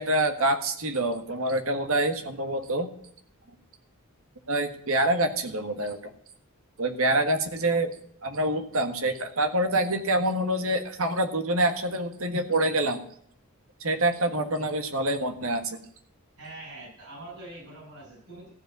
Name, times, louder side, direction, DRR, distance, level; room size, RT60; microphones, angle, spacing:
voice 1, 0.0-2.9 4.5-6.0 6.8-7.9 8.2-13.0 13.8-15.8, right 1 dB, 70° right, 7 dB, 1.6 m, -26 dB
voice 2, 16.4-18.5, right 2 dB, 90° right, -7 dB, 7.0 m, -44 dB
15.0 x 5.0 x 9.0 m, 0.66 s
head